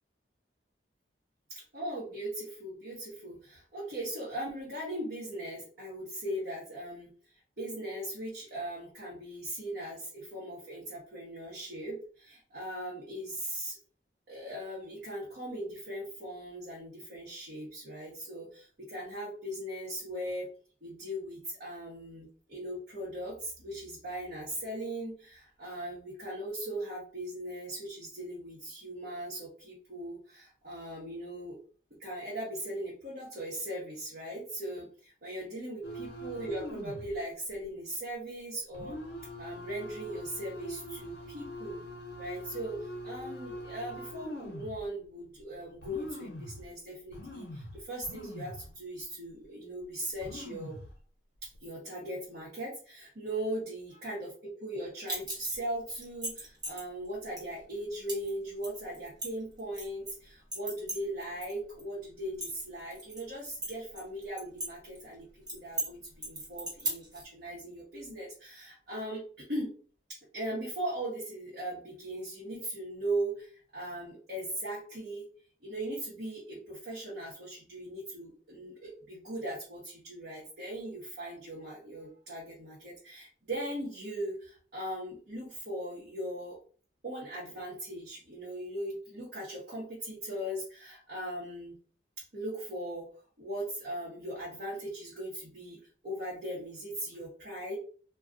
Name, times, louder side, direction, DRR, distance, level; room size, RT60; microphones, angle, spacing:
voice 1, 1.5-7.1 7.6-13.8 14.3-20.5 20.8-31.6 32.0-34.9 35.2-39.0 39.4-41.8 42.2-50.8 51.6-69.7 70.3-75.2 75.6-86.6 87.0-91.7 92.3-93.1 93.4-95.8 96.0-97.7, right 1 dB, 60° right, -5 dB, 0.9 m, -39 dB
sound 1, 35.8-37.1 37.5-37.7 38.7-44.8 45.4-45.5 45.8-46.7 47.1-48.7 49.0-49.1 49.8-49.9 50.1-50.9 51.4-51.7, equal, 65° left, 0.7 m, -43 dB
metal belt buckle handling, 55.1-55.6 56.0-56.8 57.4-57.5 58.1-58.3 58.6-60.1 60.5-61.5 61.8-61.9 62.2-63.2 63.6-64.7 64.9-65.0 65.5-65.9 66.2-67.2, right 1 dB, 20° right, 1.0 m, -36 dB
2.3 x 2.3 x 3.7 m, 0.42 s
head